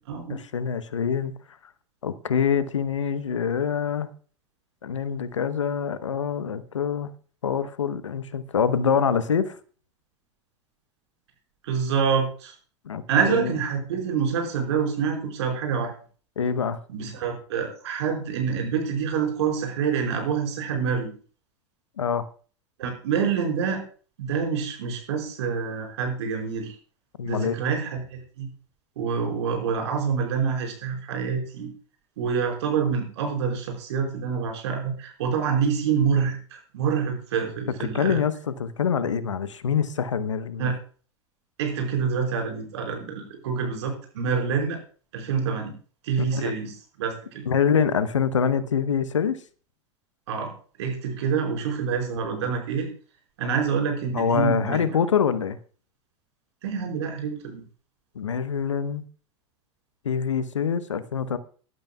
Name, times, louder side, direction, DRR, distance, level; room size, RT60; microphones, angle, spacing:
voice 1, 0.3-1.3 2.0-4.1 4.8-7.1 7.4-9.6 12.9-13.0 13.3-13.5 16.4-16.8 22.0-22.3 27.2-27.5 37.9-40.7 46.3-46.5 47.5-49.4 54.1-55.6 58.1-59.0 60.0-61.4, left 7 dB, 80° left, 1.0 m, -25 dB
voice 2, 11.6-12.5 13.1-15.9 16.9-21.1 22.8-23.8 24.2-26.7 27.2-28.5 29.0-31.7 32.2-38.2 40.6-40.7 41.6-44.8 45.1-45.7 46.0-47.4 50.3-50.5 50.8-52.9 53.4-54.9 56.6-57.6, right 6 dB, 65° right, 4.7 m, -26 dB
21.5 x 12.5 x 2.3 m
figure-of-eight pair, 85°, 15 cm